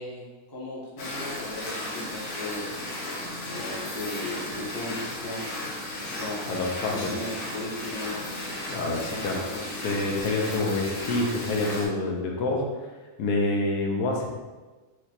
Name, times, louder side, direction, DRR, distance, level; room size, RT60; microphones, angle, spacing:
voice 1, 0.0-2.9 3.4-5.7 6.1-8.2 9.0-9.7, left 2 dB, 20° left, -6 dB, 0.6 m, -37 dB
sound 1, 1.0-11.9, left 1 dB, 60° left, 1.0 m, -35 dB
voice 2, 6.5-7.1 8.7-9.4 9.8-12.6 13.2-14.3, left 2 dB, 90° left, 0 dB, 1.2 m, -27 dB
4.7 x 2.1 x 2.8 m, 1.3 s
omnidirectional pair, 1.7 m